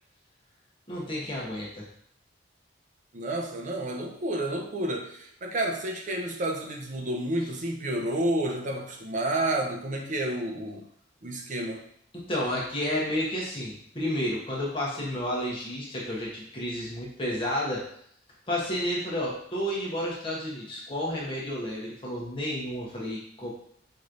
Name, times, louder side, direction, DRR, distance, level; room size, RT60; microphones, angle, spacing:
voice 1, 0.9-1.9 12.1-17.8 18.5-23.5, left 1 dB, 30° left, -5 dB, 1.0 m, -31 dB
voice 2, 3.1-10.8 11.2-11.8, right 1 dB, 40° right, 2 dB, 0.6 m, -30 dB
4.5 x 3.0 x 2.6 m, 0.66 s
head